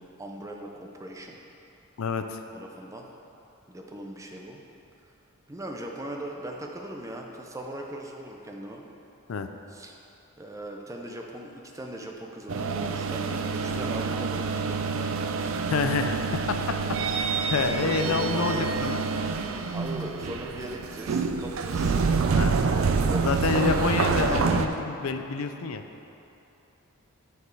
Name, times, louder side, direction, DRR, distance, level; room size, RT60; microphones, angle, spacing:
voice 1, 0.0-1.4 2.5-3.1 3.7-4.6 5.5-8.9 9.7-9.9 10.4-15.6 17.7-18.8 19.7-21.9 22.6-24.4, right 1 dB, 15° right, 1 dB, 0.5 m, -39 dB
voice 2, 2.0-2.4 9.3-9.5 15.7-19.0 22.3-22.6 23.2-25.8, left 5 dB, 85° left, 7 dB, 0.5 m, -28 dB
sound 1, 12.5-24.7, right 4 dB, 70° right, 0.4 m, -27 dB
9.7 x 4.8 x 4.7 m, 2.8 s
head